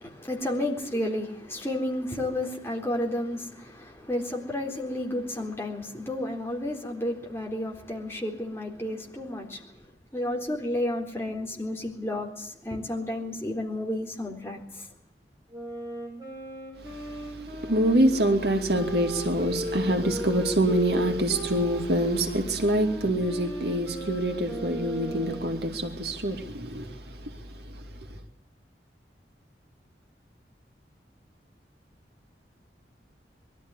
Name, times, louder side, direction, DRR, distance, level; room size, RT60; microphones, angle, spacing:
voice 1, 0.0-9.9 10.1-14.9, left 1 dB, 15° left, 3.9 m, -32 dB
Wind instrument woodwind instrument, 15.5-25.6, equal, 20° right, 5.9 m, -37 dB
voice 2, 17.6-26.9, right 1 dB, 65° right, 2.6 m, -25 dB
22.0 x 13.5 x 9.8 m
head